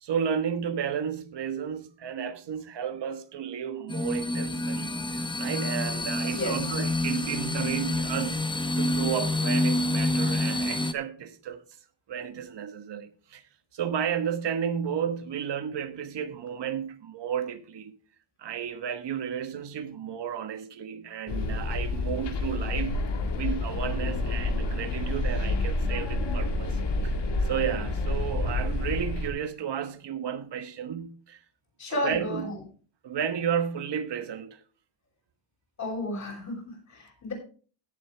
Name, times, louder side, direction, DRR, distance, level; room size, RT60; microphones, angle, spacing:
voice 1, 0.0-11.6 12.1-13.4 13.7-18.0 18.4-23.0 23.4-27.2 27.4-31.4 31.9-32.5 33.0-34.6, right 8 dB, 70° right, 1.3 m, -33 dB
sound 1, 3.9-10.9, left 1 dB, 10° left, 0.8 m, -28 dB
sound 2, 21.3-29.3, left 2 dB, 70° left, 2.0 m, -29 dB
voice 2, 31.8-32.6 35.8-37.3, left 2 dB, 40° left, 6.7 m, -32 dB
16.0 x 7.8 x 3.4 m
wide cardioid pair, 145°, 43 cm